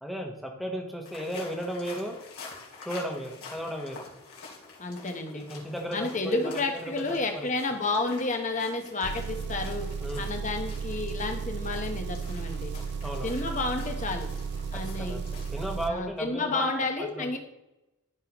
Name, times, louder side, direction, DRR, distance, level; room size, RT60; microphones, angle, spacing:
voice 1, 0.0-2.2 2.8-4.0 5.3-8.2 9.3-9.4 10.0-10.3 13.0-13.6 15.0-15.2 15.5-16.8, equal, ahead, 1 dB, 1.1 m, -35 dB
sound 1, 1.0-15.7, left 4 dB, 80° left, 2.8 m, -48 dB
voice 2, 4.8-5.4 5.9-9.9 10.2-12.7 13.2-14.3 14.7-15.2 15.9-17.4, left 3 dB, 35° left, 4 dB, 1.1 m, -31 dB
Engine, 9.0-15.9, right 5 dB, 50° right, 0.4 m, -34 dB
13.0 x 5.6 x 3.1 m, 0.94 s
head